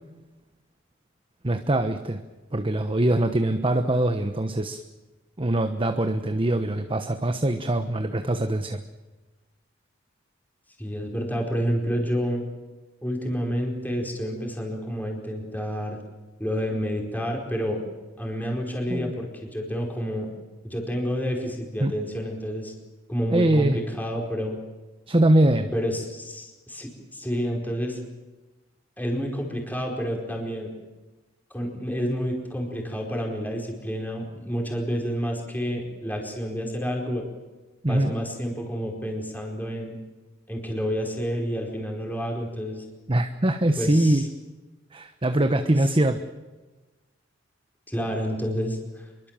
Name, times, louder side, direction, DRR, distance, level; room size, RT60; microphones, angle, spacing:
voice 1, 1.4-2.2 2.5-4.8 5.4-8.8 18.9-19.1 21.8-21.9 23.3-23.8 25.1-25.7 37.8-38.1 43.1-44.2 44.9-46.2, right 1 dB, 25° right, 7 dB, 1.1 m, -23 dB
voice 2, 10.8-12.4 13.0-16.0 16.4-17.8 18.2-20.3 20.6-22.7 23.1-24.6 25.7-28.0 29.0-30.7 31.5-37.3 37.9-40.0 40.5-42.8 43.8-44.3 47.9-48.8, equal, 10° left, 0 dB, 4.7 m, -29 dB
26.5 x 23.5 x 7.5 m, 1.2 s
head